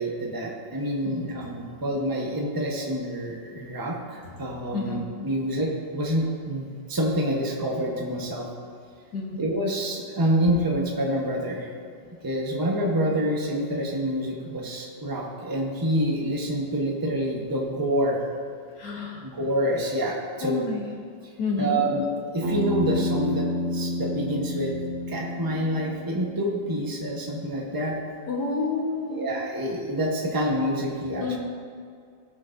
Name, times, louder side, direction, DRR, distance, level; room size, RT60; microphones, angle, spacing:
voice 1, 0.0-8.5 9.4-11.7 12.2-18.2 19.2-20.7 21.6-22.0 22.3-24.8 25.1-28.0 29.1-31.4, right 1 dB, 15° right, -1 dB, 0.8 m, -27 dB
voice 2, 1.0-1.6 4.5-5.2 9.1-9.4 18.8-19.2 20.4-20.9 21.4-21.8 28.3-29.3 31.2-31.4, left 3 dB, 65° left, -1 dB, 1.8 m, -30 dB
Bass guitar, 22.4-26.7, left 1 dB, 80° right, 1.9 m, -30 dB
16.5 x 6.3 x 2.6 m, 2.3 s
omnidirectional pair, 2.0 m